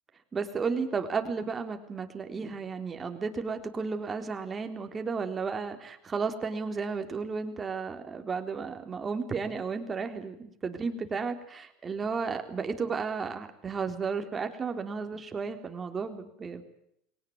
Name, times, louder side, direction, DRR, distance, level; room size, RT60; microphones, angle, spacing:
voice 1, 0.3-16.7, right 5 dB, 25° right, 6 dB, 3.8 m, -33 dB
22.0 x 18.5 x 9.6 m, 0.75 s
supercardioid pair, 110°, 0 cm